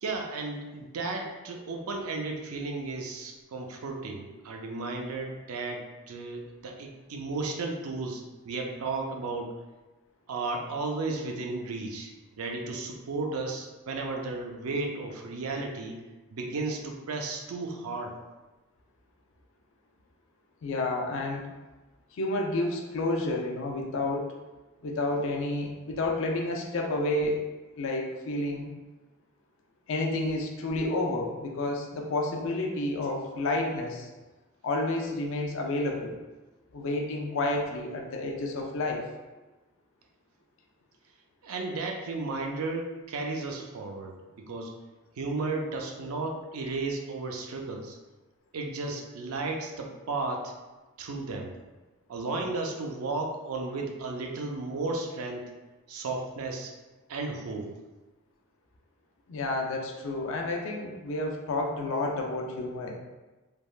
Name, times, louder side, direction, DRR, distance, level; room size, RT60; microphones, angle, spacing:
voice 1, 0.0-9.5 10.3-16.0 16.3-18.1 41.4-44.7 45.2-48.0 48.5-50.5 51.0-51.5 52.1-55.5 55.9-56.7 57.1-57.8, right 3 dB, 85° right, 2 dB, 0.4 m, -34 dB
voice 2, 20.6-21.5 22.1-24.3 24.8-27.5 27.8-28.7 29.9-34.1 34.6-36.2 36.7-39.0 59.3-62.9, left 2 dB, 65° left, 1 dB, 0.4 m, -30 dB
3.4 x 2.1 x 2.3 m, 1.2 s
head